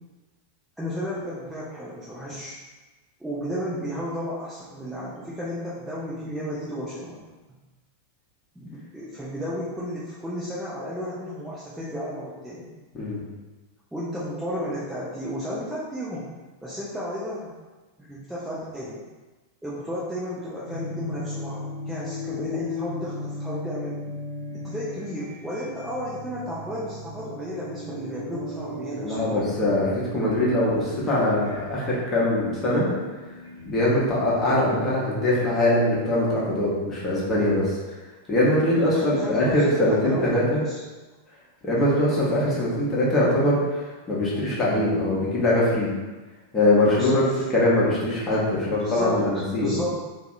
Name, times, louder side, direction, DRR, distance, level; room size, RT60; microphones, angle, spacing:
voice 1, 0.8-2.6 3.2-7.2 8.6-12.7 13.9-16.3 16.6-17.5 18.0-19.0 19.6-24.0 24.5-29.5 38.8-40.8 46.9-47.4 48.5-49.2 49.6-50.0, equal, 5° right, -8 dB, 0.4 m, -33 dB
sound 1, 20.6-35.8, left 1 dB, 75° right, 0.5 m, -37 dB
voice 2, 29.0-32.9 33.7-38.0 38.3-40.6 41.6-45.9 46.5-49.7, left 1 dB, 20° left, -7 dB, 0.8 m, -22 dB
2.6 x 2.0 x 2.5 m, 1.2 s
figure-of-eight pair, 90°, 0 cm